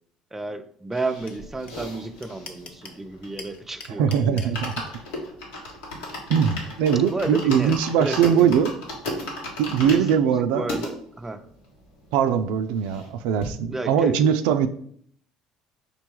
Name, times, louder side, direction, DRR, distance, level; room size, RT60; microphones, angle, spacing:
voice 1, 0.3-4.5 7.1-8.6 9.9-11.5 13.7-14.3, right 2 dB, 10° right, 0.4 m, -32 dB
sound 1, 0.9-3.7 4.0-4.1 4.4-10.9 11.5-11.6 11.8-11.9 12.2-13.1 13.4-13.5, left 1 dB, 90° left, 1.4 m, -34 dB
sound 2, 1.3-1.4 1.7-1.8 2.0-3.0 3.4-4.8, left 4 dB, 60° left, 0.8 m, -39 dB
voice 2, 4.0-4.7 6.3-8.7 9.6-10.7 12.1-14.7, right 8 dB, 80° right, 0.3 m, -21 dB
5.2 x 2.3 x 4.5 m
supercardioid pair, 90°, 2 cm